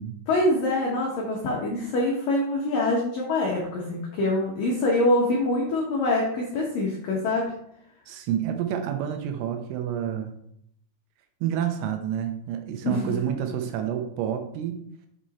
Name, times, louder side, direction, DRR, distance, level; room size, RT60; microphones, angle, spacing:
voice 1, 0.3-7.5 12.8-13.4, left 2 dB, 85° left, -2 dB, 1.9 m, -25 dB
voice 2, 8.1-10.3 11.4-14.8, right 9 dB, 80° right, 5 dB, 3.1 m, -29 dB
7.6 x 5.1 x 4.1 m, 0.71 s
omnidirectional pair, 5.8 m